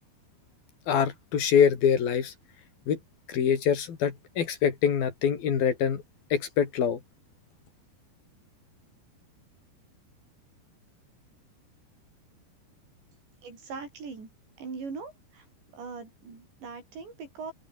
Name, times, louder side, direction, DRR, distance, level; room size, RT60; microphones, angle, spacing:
voice 1, 0.9-2.3 2.9-3.0 3.3-6.0 6.3-7.0, left 8 dB, 55° left, 5.0 m, -24 dB
voice 2, 13.4-14.3 14.6-15.5 15.7-17.5, right 4 dB, 70° right, 9.6 m, -40 dB
omnidirectional pair, 5.3 m